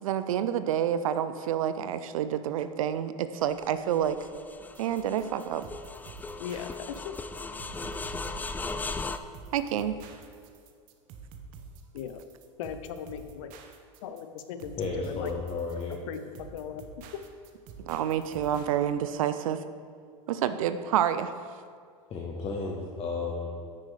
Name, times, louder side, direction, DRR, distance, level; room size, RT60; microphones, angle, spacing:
voice 1, 0.0-4.2 4.8-5.6 9.5-9.9 17.8-19.6 20.3-21.3, right 10 dB, 85° right, 11 dB, 0.4 m, -28 dB
sound 1, 3.5-9.2, left 3 dB, 10° left, 0.3 m, -38 dB
sound 2, 4.7-18.8, right 5 dB, 55° right, 0.9 m, -48 dB
voice 2, 6.4-7.1 11.9-12.2 12.6-13.6 14.0-14.8 15.0-15.3 16.1-16.8 17.1-17.2, left 8 dB, 75° left, 10 dB, 0.6 m, -38 dB
voice 3, 14.8-16.0 22.1-23.5, left 4 dB, 35° left, -1 dB, 1.0 m, -33 dB
9.5 x 6.1 x 3.3 m, 2.1 s
hypercardioid pair, 100°, 17 cm